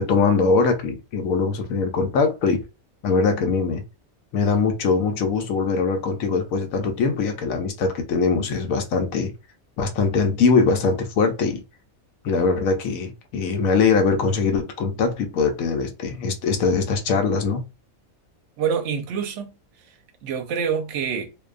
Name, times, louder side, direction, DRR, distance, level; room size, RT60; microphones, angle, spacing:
voice 1, 0.0-2.6 3.0-3.8 4.3-9.3 9.8-11.6 12.2-17.6, left 4 dB, 80° left, 1.1 m, -22 dB
voice 2, 18.6-19.5 19.9-21.3, right 7 dB, 65° right, 0.8 m, -27 dB
2.6 x 2.2 x 2.3 m
omnidirectional pair, 1.4 m